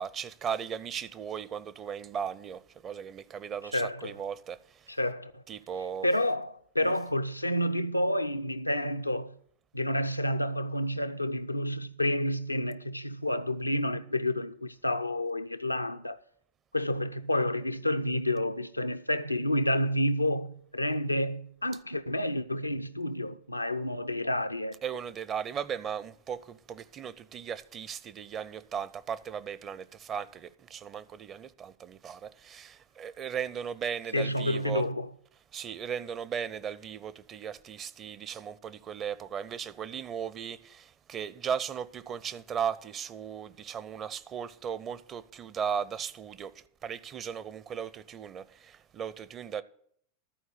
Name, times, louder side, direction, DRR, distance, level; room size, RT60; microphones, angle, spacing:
voice 1, 0.0-4.9 5.5-6.1 6.8-6.9 24.8-34.9 35.5-49.6, right 7 dB, 30° right, 0.5 m, -37 dB
voice 2, 3.7-4.2 5.0-5.4 6.0-9.4 9.7-16.2 16.7-24.8 34.1-35.1, left 1 dB, 85° left, 0.5 m, -29 dB
13.0 x 4.7 x 8.0 m
figure-of-eight pair, 90°, 0 cm